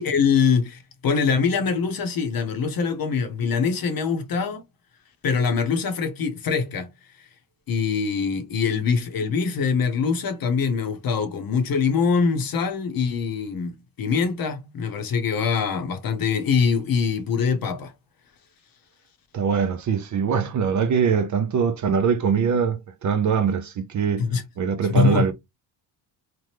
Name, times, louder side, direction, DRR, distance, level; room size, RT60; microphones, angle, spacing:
voice 1, 0.0-4.6 5.2-6.9 7.7-17.9 24.2-24.4 24.9-25.3, left 5 dB, 45° left, 0.8 m, -23 dB
voice 2, 19.3-24.3 24.6-25.3, right 6 dB, 40° right, 0.5 m, -22 dB
2.9 x 2.1 x 3.3 m
supercardioid pair, 75°, 47 cm